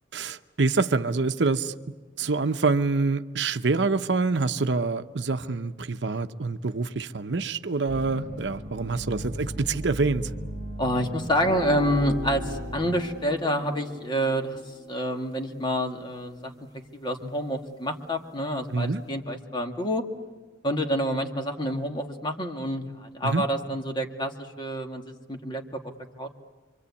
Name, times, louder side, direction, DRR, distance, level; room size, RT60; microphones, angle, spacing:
voice 1, 0.1-1.7 2.2-10.3 18.7-19.0 23.2-23.4, right 3 dB, 65° right, 0.8 m, -26 dB
sound 1, 7.9-12.9, right 1 dB, 40° left, 3.0 m, -37 dB
voice 2, 10.8-16.5 16.9-20.1 20.6-26.3, equal, 25° left, 1.9 m, -28 dB
sound 2, 11.3-17.9, left 3 dB, 20° right, 2.5 m, -41 dB
26.5 x 24.5 x 8.4 m
head